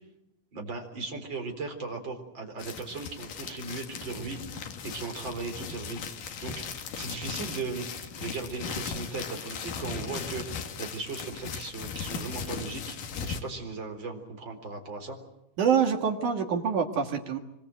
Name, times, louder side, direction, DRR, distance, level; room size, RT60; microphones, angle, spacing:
voice 1, 0.5-6.0 6.4-6.5 7.0-15.2, right 4 dB, 25° right, 4 dB, 4.1 m, -37 dB
sound 1, 2.6-13.4, left 6 dB, 55° left, 2.9 m, -38 dB
voice 2, 15.6-17.4, right 7 dB, 55° right, 4 dB, 2.4 m, -25 dB
25.5 x 24.0 x 7.9 m, 0.84 s
omnidirectional pair, 5.7 m